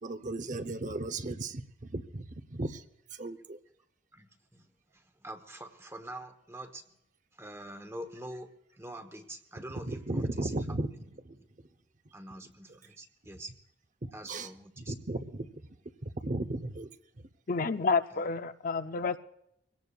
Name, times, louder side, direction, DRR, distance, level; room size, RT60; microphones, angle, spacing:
voice 1, 0.0-1.6 1.9-2.8 3.2-3.6 9.9-10.9 11.2-11.3 14.0-14.5 14.8-15.5 16.0-16.9, right 2 dB, 45° right, 10 dB, 0.8 m, -35 dB
voice 2, 4.1-4.7 4.9-6.9 7.3-10.8 11.3-11.4 12.1-13.5 14.1-14.9 18.1-18.2, right 1 dB, 15° right, 7 dB, 1.1 m, -45 dB
voice 3, 17.5-19.2, left 4 dB, 50° left, 10 dB, 0.6 m, -29 dB
23.5 x 17.5 x 2.4 m, 0.79 s
head